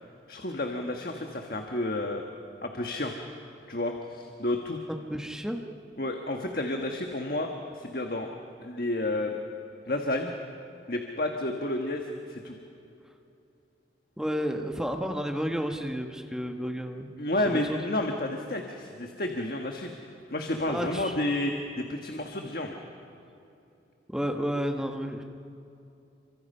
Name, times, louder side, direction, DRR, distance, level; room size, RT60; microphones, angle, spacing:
voice 1, 0.3-2.2 2.6-3.1 3.7-4.8 6.0-8.3 8.6-9.4 9.9-10.3 10.9-12.5 17.2-19.9 20.3-22.7, left 1 dB, 50° left, 3 dB, 1.4 m, -31 dB
voice 2, 4.9-5.6 14.2-17.1 17.4-17.8 20.7-21.2 24.1-25.2, equal, 5° right, 4 dB, 1.1 m, -31 dB
28.5 x 25.0 x 5.6 m, 2.7 s
head